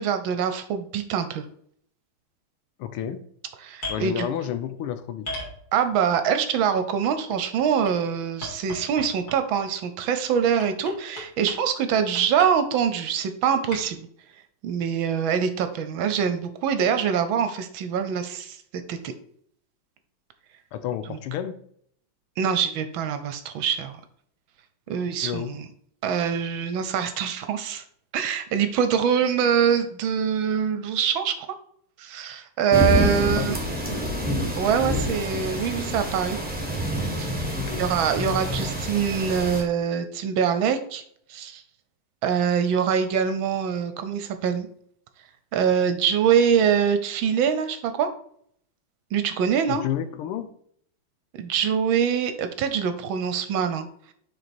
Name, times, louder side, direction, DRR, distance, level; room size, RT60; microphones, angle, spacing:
voice 1, 0.0-1.5 3.6-4.3 5.7-14.1 14.6-18.6 18.9-19.1 21.1-21.2 22.4-24.0 24.9-25.7 26.0-27.8 28.1-31.5 32.0-33.6 34.6-36.4 37.2-37.3 37.8-41.0 41.3-41.6 42.2-44.7 45.5-48.1 49.1-49.8 51.3-53.9, right 7 dB, 70° right, 9 dB, 1.4 m, -24 dB
voice 2, 2.8-3.3 3.9-5.3 20.7-21.6 25.2-25.5 33.2-33.7 37.5-37.8 49.7-50.5, left 10 dB, 85° left, 11 dB, 1.6 m, -31 dB
sound 1, 3.7-4.0 5.2-6.0 7.0-7.9 8.4-9.5 10.6-11.6 11.9-12.5 13.7-13.8, left 1 dB, 45° left, 2.9 m, -35 dB
sound 2, 32.7-39.6, equal, 5° right, 1.0 m, -27 dB
6.5 x 4.7 x 4.3 m, 0.64 s
omnidirectional pair, 2.4 m